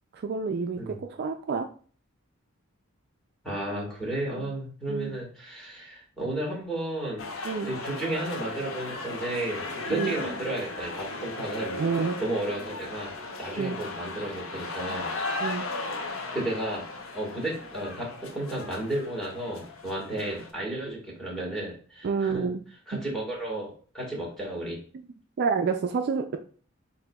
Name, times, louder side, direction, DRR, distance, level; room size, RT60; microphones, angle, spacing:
voice 1, 0.1-1.7 4.4-4.5 4.9-5.1 7.4-7.7 9.9-10.1 11.8-12.2 13.6-13.8 15.4-15.6 22.0-22.6 25.4-26.4, right 5 dB, 50° right, 6 dB, 0.3 m, -28 dB
voice 2, 3.4-7.3 7.7-11.8 12.2-13.1 13.4-15.1 16.3-16.9 17.1-22.4 22.9-24.8, right 1 dB, 5° left, -4 dB, 1.7 m, -33 dB
sound 1, 7.2-20.5, left 2 dB, 70° left, 0.7 m, -36 dB
7.6 x 2.7 x 2.3 m, 0.43 s
head